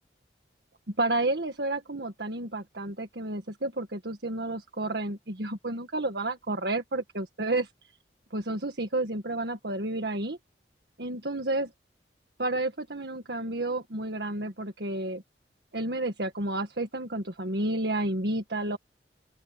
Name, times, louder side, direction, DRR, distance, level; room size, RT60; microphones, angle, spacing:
voice 1, 0.9-7.7 8.3-10.4 11.0-11.7 12.4-15.2 15.7-18.8, right 2 dB, 65° right, 1.8 m, -31 dB
open air
head